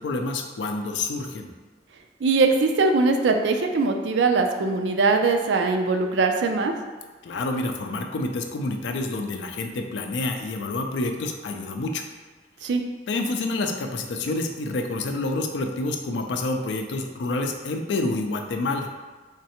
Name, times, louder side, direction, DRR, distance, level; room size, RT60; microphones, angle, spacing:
voice 1, 0.0-1.5 7.2-12.0 13.1-18.9, left 2 dB, 80° left, 5 dB, 0.4 m, -28 dB
voice 2, 2.2-6.7 12.6-12.8, right 3 dB, 80° right, 5 dB, 0.4 m, -21 dB
3.6 x 3.1 x 2.9 m, 1.3 s
head